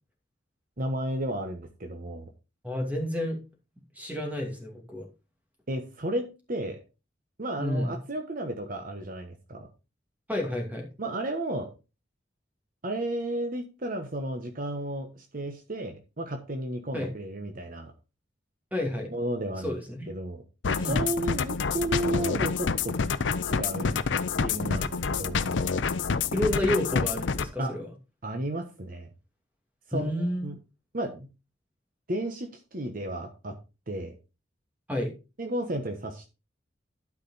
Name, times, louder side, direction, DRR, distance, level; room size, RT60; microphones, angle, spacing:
voice 1, 0.8-2.3 5.7-6.8 7.4-9.7 11.0-11.7 12.8-17.9 19.1-19.8 20.1-23.0 23.4-23.9 24.4-25.4 27.6-27.7 28.2-29.1 29.9-30.1 30.4-30.6 30.9-31.3 32.1-33.6 33.9-34.1 35.4-36.3, right 1 dB, 50° right, 5 dB, 1.1 m, -33 dB
voice 2, 2.6-3.4 4.0-5.1 7.6-8.0 10.3-10.9 16.9-17.1 18.7-19.1 19.6-20.1 20.8-21.0 26.3-27.9 29.9-30.5 34.9-35.1, left 1 dB, 10° right, 2 dB, 2.4 m, -30 dB
sound 1, 20.6-27.5, left 5 dB, 80° left, 0.6 m, -28 dB
12.0 x 5.1 x 4.1 m, 0.30 s
head